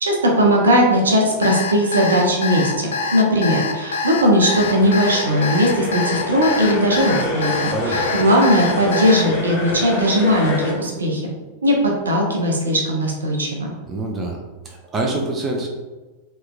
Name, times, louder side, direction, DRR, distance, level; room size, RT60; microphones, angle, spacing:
voice 1, 0.0-11.2 11.6-13.7, equal, 70° right, 0 dB, 0.6 m, -18 dB
Alarm, 1.4-9.2, left 4 dB, 65° left, 0.3 m, -25 dB
sound 1, 4.6-10.7, left 2 dB, 50° left, 0.9 m, -28 dB
voice 2, 7.7-8.1 13.9-15.7, right 2 dB, 25° right, 1 dB, 0.5 m, -26 dB
3.4 x 3.0 x 2.2 m, 1.2 s
figure-of-eight pair, 90°, 0 cm